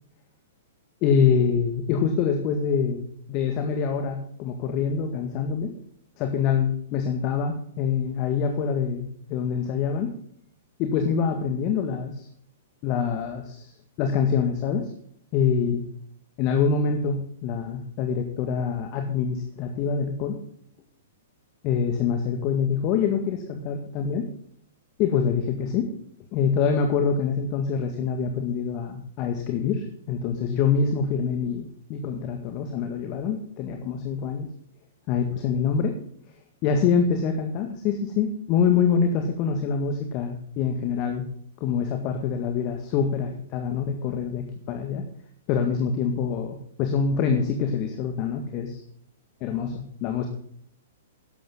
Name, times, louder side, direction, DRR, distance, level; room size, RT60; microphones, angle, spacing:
voice 1, 1.0-3.0 3.3-5.7 6.2-10.1 10.8-12.3 12.8-13.7 14.0-14.9 15.3-15.8 16.4-20.4 21.6-24.3 25.0-25.9 26.3-34.5 35.1-35.9 36.6-41.3 41.6-45.0 45.5-48.8 49.4-50.3, left 6 dB, 40° left, 5 dB, 1.9 m, -25 dB
13.5 x 11.5 x 3.9 m, 0.65 s
figure-of-eight pair, 110°, 0 cm